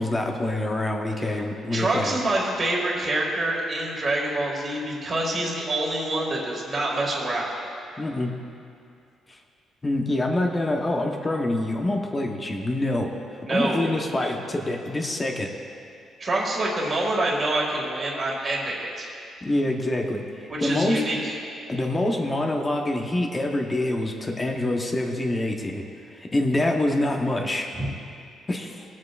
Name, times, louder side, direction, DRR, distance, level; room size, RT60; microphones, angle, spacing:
voice 1, 0.0-2.1 8.0-8.3 9.3-9.4 9.8-13.1 13.5-15.5 19.4-20.2 20.6-21.0 21.7-25.8 26.2-27.7 28.5-28.8, left 1 dB, 20° left, 2 dB, 0.9 m, -25 dB
voice 2, 1.7-7.5 13.4-13.9 16.2-19.1 20.5-21.3 27.8-27.9, right 1 dB, 35° right, -3 dB, 2.0 m, -26 dB
20.5 x 7.5 x 2.5 m, 2.5 s
cardioid pair, 115°, 0 cm